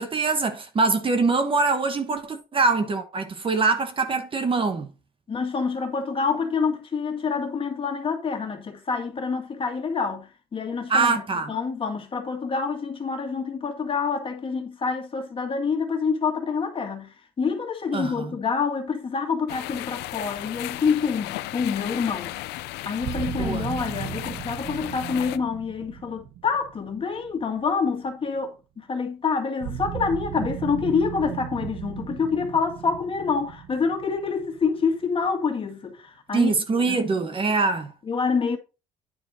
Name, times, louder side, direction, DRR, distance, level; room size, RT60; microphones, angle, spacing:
voice 1, 0.0-4.9 10.9-11.5 17.9-18.3 23.3-23.7 36.3-37.9, right 4 dB, 30° right, 1.2 m, -24 dB
voice 2, 5.3-11.1 11.5-22.6 22.9-37.0 38.1-38.6, left 5 dB, 30° left, 1.9 m, -27 dB
sound 1, 19.5-25.4, left 16 dB, 85° left, 0.5 m, -35 dB
sound 2, 23.0-28.0 29.6-35.3, right 11 dB, 70° right, 0.8 m, -36 dB
9.7 x 4.4 x 4.2 m
cardioid pair, 110°, 17 cm